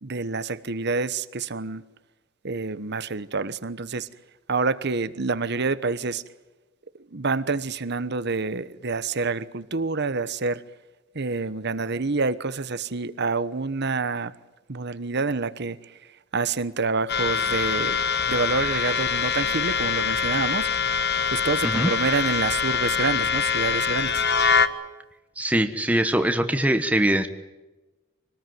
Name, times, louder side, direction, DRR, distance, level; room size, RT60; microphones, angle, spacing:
voice 1, 0.0-1.8 2.4-4.1 4.5-6.2 7.1-10.6 11.1-14.3 14.7-16.0 16.3-18.0 18.3-20.7 21.3-24.2, right 4 dB, 60° right, 1.2 m, -27 dB
sound 1, 17.1-24.7, left 6 dB, 55° left, 1.4 m, -24 dB
voice 2, 25.4-27.3, right 1 dB, 5° right, 1.2 m, -22 dB
25.5 x 19.5 x 9.4 m
head